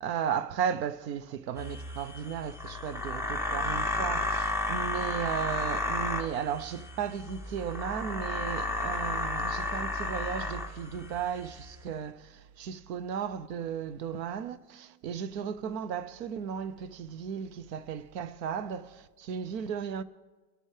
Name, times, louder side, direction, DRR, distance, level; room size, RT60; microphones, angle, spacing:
voice 1, 0.0-20.0, right 7 dB, 90° right, 0.8 m, -35 dB
sound 1, 1.6-11.8, left 2 dB, 5° right, 0.4 m, -33 dB
21.5 x 9.9 x 3.3 m
supercardioid pair, 140°, 48 cm